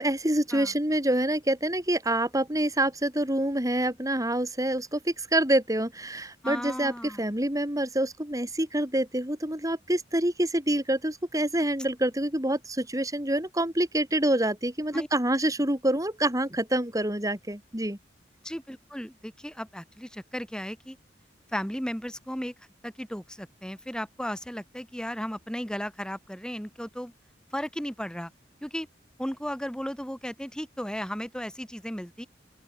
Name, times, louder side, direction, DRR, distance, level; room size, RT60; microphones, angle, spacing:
voice 1, 0.0-18.0, right 1 dB, 20° right, 5.4 m, -26 dB
voice 2, 6.4-7.2 14.9-15.1 18.4-21.0 21.5-22.5 22.8-27.1 27.5-28.3 28.6-28.9 29.2-32.3, equal, 5° left, 4.8 m, -35 dB
open air
head